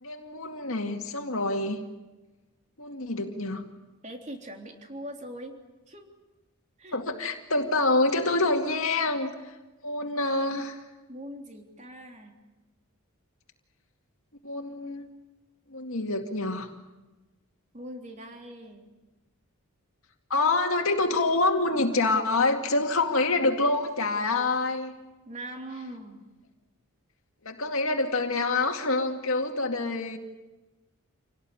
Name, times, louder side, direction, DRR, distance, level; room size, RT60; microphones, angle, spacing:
voice 1, 0.0-1.8 2.8-3.6 6.9-9.3 9.8-10.8 14.4-15.1 15.7-16.7 20.3-24.9 27.4-30.2, left 2 dB, 65° left, 3 dB, 2.3 m, -26 dB
voice 2, 4.0-5.5 5.9-6.1 6.8-7.0 11.1-12.3 17.7-18.9 25.2-26.2, right 1 dB, 30° right, 3 dB, 3.4 m, -41 dB
27.5 x 18.0 x 9.8 m, 1.1 s
head